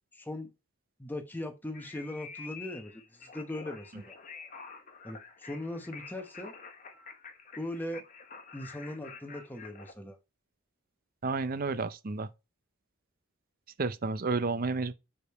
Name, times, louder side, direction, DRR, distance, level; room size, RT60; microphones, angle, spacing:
voice 1, 0.1-0.5 1.0-4.2 5.0-6.5 7.6-8.0 8.5-10.2, left 1 dB, 10° left, 0.8 m, -39 dB
sound 1, 1.7-9.9, left 5 dB, 35° left, 0.9 m, -48 dB
voice 2, 11.2-12.3 13.8-14.9, right 3 dB, 40° right, 0.5 m, -31 dB
5.0 x 5.0 x 4.5 m
head